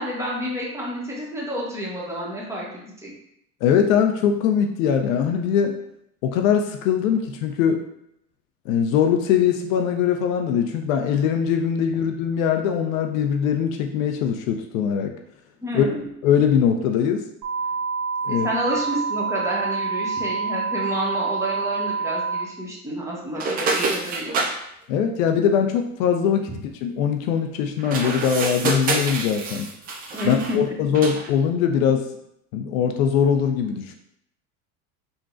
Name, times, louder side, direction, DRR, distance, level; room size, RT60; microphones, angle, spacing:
voice 1, 0.0-3.1 15.6-16.0 18.3-24.4 30.1-30.7, equal, 5° right, -5 dB, 0.9 m, -29 dB
voice 2, 3.6-5.8 6.2-7.8 8.7-15.1 15.7-15.9 16.2-17.2 18.2-18.5 24.9-26.5 26.8-29.7 30.2-32.1 32.5-33.9, left 8 dB, 65° left, 5 dB, 0.5 m, -21 dB
sound 1, 17.4-22.4, right 5 dB, 45° right, 0.7 m, -27 dB
sound 2, 23.4-24.6 27.8-30.6 30.9-31.3, right 3 dB, 25° right, 0.3 m, -26 dB
3.8 x 2.2 x 2.4 m, 0.76 s
hypercardioid pair, 90°, 44 cm